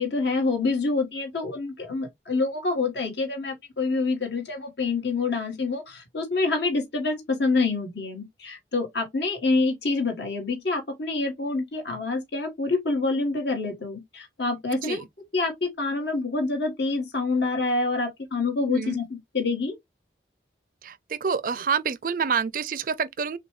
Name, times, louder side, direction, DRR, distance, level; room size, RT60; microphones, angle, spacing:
voice 1, 0.0-15.0 15.3-19.7, left 3 dB, 70° left, 1.5 m, -27 dB
voice 2, 20.8-23.4, right 6 dB, 50° right, 0.4 m, -27 dB
6.6 x 2.2 x 3.1 m
head